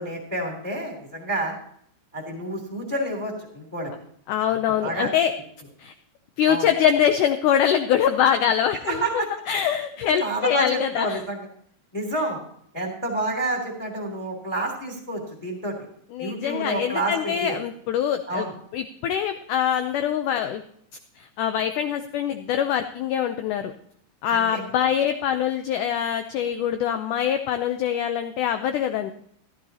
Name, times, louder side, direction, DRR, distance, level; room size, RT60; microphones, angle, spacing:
voice 1, 0.0-1.5 2.1-3.9 4.5-5.1 6.5-6.7 8.8-9.3 10.2-11.5 11.9-12.4 12.7-15.7 16.2-17.6 18.3-18.5 24.3-24.6, right 1 dB, 5° left, 1 dB, 1.8 m, -29 dB
voice 2, 4.3-5.3 5.8-5.9 6.4-11.2 16.1-18.5 18.7-20.6 21.2-23.7 24.2-29.1, left 9 dB, 85° left, 7 dB, 1.8 m, -24 dB
15.5 x 12.5 x 2.8 m, 0.64 s
omnidirectional pair, 4.4 m